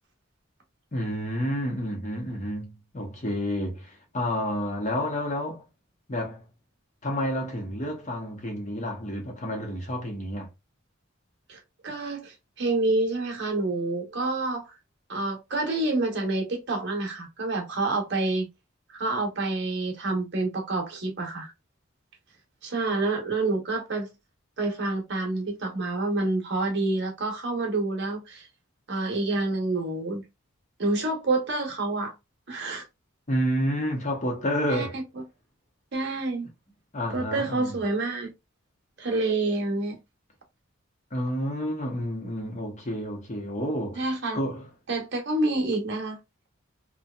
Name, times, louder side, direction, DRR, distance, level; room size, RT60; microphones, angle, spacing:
voice 1, 0.9-5.6 6.1-6.4 7.0-10.5 33.3-35.0 36.9-37.7 41.1-44.1 44.3-44.7, equal, 35° left, 0.8 m, -30 dB
voice 2, 11.8-14.7 15.1-18.5 18.9-21.5 22.6-24.1 24.6-28.5 28.9-30.2 30.8-32.1 32.5-32.8 34.7-35.0 35.9-36.5 37.1-38.3 39.0-40.0 44.0-44.4 44.9-46.2, right 2 dB, 55° right, 0.8 m, -28 dB
2.7 x 2.2 x 2.2 m
head